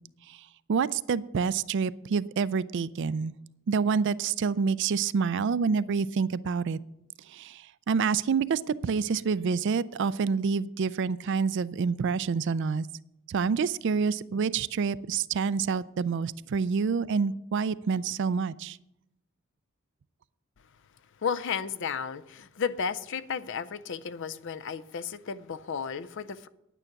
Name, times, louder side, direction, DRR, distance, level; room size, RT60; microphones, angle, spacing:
voice 1, 0.7-3.3 3.7-6.8 7.3-12.9 13.3-18.8, right 5 dB, 55° right, 0.4 m, -27 dB
voice 2, 21.2-26.5, left 6 dB, 60° left, 0.5 m, -33 dB
9.9 x 9.2 x 5.8 m
head